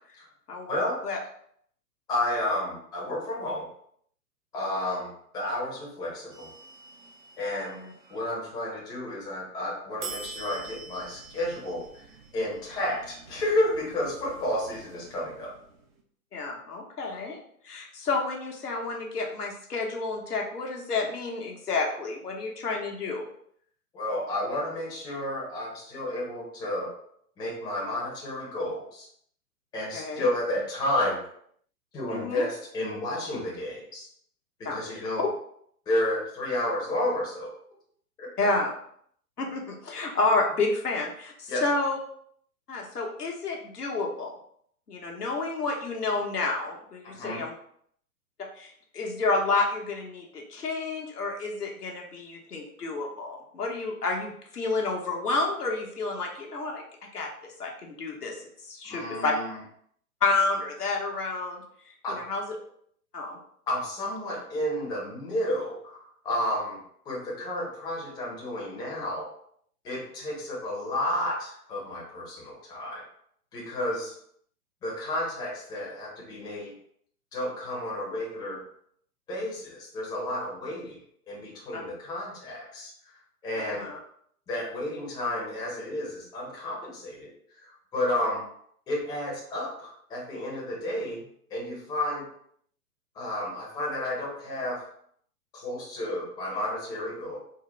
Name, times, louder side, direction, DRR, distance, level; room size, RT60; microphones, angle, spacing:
voice 1, 0.7-1.0 2.1-3.7 4.5-6.5 7.4-7.8 8.1-12.0 12.3-15.5 23.9-26.9 27.4-29.1 29.7-31.2 31.9-34.1 34.6-35.3 35.9-37.5 38.2-38.3 41.5-41.6 47.1-47.4 58.9-59.6 62.0-62.2 63.7-66.8 67.0-69.3 69.8-73.0 73.5-74.1 74.8-76.7 77.3-78.6 79.3-81.0 81.3-82.9 83.4-83.9 84.5-87.3 87.6-88.4 88.9-91.2 91.5-92.2 93.1-94.8 95.5-97.4, left 1 dB, 10° left, -4 dB, 0.6 m, -31 dB
sound 1, 6.3-8.3 10.0-16.0, right 4 dB, 35° right, 0.5 m, -46 dB
voice 2, 16.3-23.2 29.9-30.3 32.1-32.5 34.6-35.3 38.4-38.7 39.4-42.0 42.7-44.4 44.9-47.5 48.4-56.8 57.1-59.3 60.2-62.4 63.1-63.4 81.7-81.8 83.7-84.0, left 3 dB, 85° left, 0 dB, 0.9 m, -30 dB
3.7 x 2.1 x 3.0 m, 0.65 s
figure-of-eight pair, 115°, 46 cm